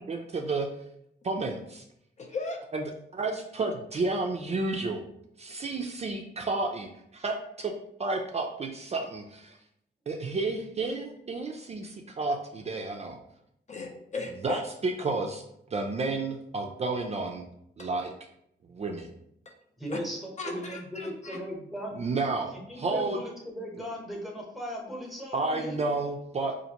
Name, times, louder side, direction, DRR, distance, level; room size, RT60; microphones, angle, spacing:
voice 1, 0.1-0.7 1.2-1.9 2.7-2.8 3.1-5.0 5.4-7.7 8.0-9.6 10.1-13.2 14.4-15.4 15.7-17.5 17.8-18.1 18.7-19.1 21.9-23.2 25.3-26.6, right 3 dB, 35° right, 2 dB, 0.4 m, -31 dB
voice 2, 2.2-2.6 13.7-14.6 17.8-17.9 19.5-19.6 19.9-20.0 20.4-21.4, left 3 dB, 40° left, 2 dB, 0.5 m, -37 dB
voice 3, 19.8-22.0 22.5-25.9, equal, ahead, -1 dB, 0.9 m, -38 dB
4.2 x 2.5 x 2.8 m, 0.76 s
wide cardioid pair, 115°, 18 cm